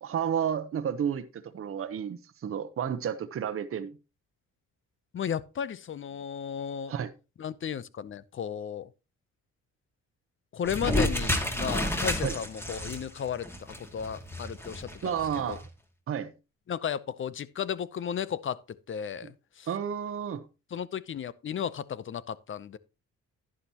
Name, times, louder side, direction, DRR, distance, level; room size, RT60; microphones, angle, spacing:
voice 1, 0.0-4.0 6.9-7.1 12.2-12.3 15.0-15.7 16.1-16.3 19.2-19.3 19.7-20.4, right 8 dB, 45° right, 0.9 m, -31 dB
voice 2, 5.1-6.9 7.4-8.9 10.5-15.6 16.7-18.6 18.9-19.7 20.7-22.8, left 8 dB, 40° left, 0.7 m, -34 dB
sound 1, 10.6-15.7, left 1 dB, 10° left, 1.9 m, -31 dB
11.0 x 9.8 x 2.9 m
cardioid pair, 90°, 30 cm